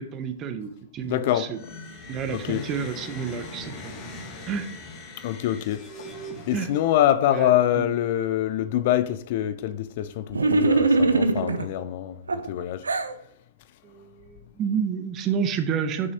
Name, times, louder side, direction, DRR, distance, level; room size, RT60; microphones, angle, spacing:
voice 1, 0.0-1.6 2.1-4.1 4.5-4.7 6.5-6.7 7.3-7.8 13.8-16.1, right 7 dB, 30° right, 0.7 m, -30 dB
voice 2, 1.0-1.5 2.3-2.6 5.2-6.1 6.5-12.9, left 12 dB, 50° left, 0.4 m, -25 dB
sound 1, 1.5-7.2, left 1 dB, 30° left, 1.5 m, -41 dB
sound 2, 10.3-11.7 12.3-13.1, right 3 dB, 90° right, 0.5 m, -21 dB
6.2 x 5.5 x 2.8 m
hypercardioid pair, 120°, 0 cm